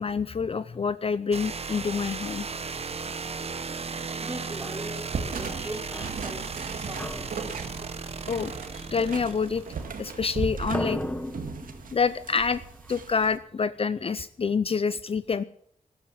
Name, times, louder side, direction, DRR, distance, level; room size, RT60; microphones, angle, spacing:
voice 1, 0.0-2.5 5.6-5.7 8.3-9.6 10.0-11.0 11.9-12.6 12.9-15.4, left 5 dB, 40° left, 15 dB, 0.5 m, -27 dB
sound 1, 1.3-10.1, right 5 dB, 45° right, 0.9 m, -36 dB
voice 2, 4.2-7.4, right 1 dB, 20° right, 3 dB, 3.2 m, -40 dB
sound 2, 4.6-4.9 5.5-6.6 7.0-10.3 10.6-13.2, left 1 dB, 10° left, 1.4 m, -39 dB
sound 3, 5.1-13.3, right 5 dB, 80° right, 1.9 m, -37 dB
13.5 x 11.5 x 7.2 m, 0.67 s
cardioid pair, 80°, 14 cm